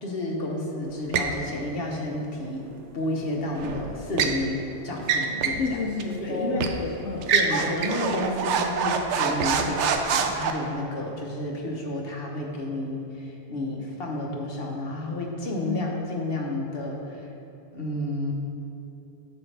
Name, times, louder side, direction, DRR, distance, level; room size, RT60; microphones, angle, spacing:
voice 1, 0.0-2.7 2.9-5.8 6.2-7.0 7.3-17.3 17.7-18.3, left 1 dB, 55° left, -1 dB, 1.2 m, -31 dB
sound 1, 1.1-1.4 3.6-4.4 5.0-5.7 6.0-6.1 6.6-6.8 7.2-10.5, right 6 dB, 75° right, 0.9 m, -25 dB
voice 2, 5.6-7.3 9.6-9.8 15.7-15.9, left 4 dB, 75° left, -1 dB, 0.9 m, -30 dB
Marimba xylophone, 7.8-9.5, left 3 dB, 55° right, 1.2 m, -43 dB
9.3 x 6.4 x 3.3 m, 2.9 s
omnidirectional pair, 1.2 m